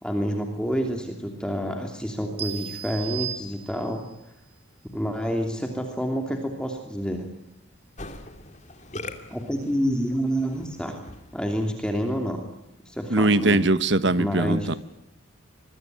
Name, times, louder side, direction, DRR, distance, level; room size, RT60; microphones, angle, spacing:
voice 1, 0.0-4.0 4.9-7.3 9.3-11.0 11.3-12.4 12.8-13.6 14.1-14.7, equal, 5° left, 2.9 m, -28 dB
sound 1, 2.4-4.1, right 9 dB, 30° right, 2.4 m, -35 dB
Musical instrument, 8.0-12.2, left 2 dB, 35° left, 2.6 m, -42 dB
voice 2, 13.1-14.8, right 2 dB, 60° right, 1.3 m, -21 dB
26.0 x 22.0 x 9.2 m
head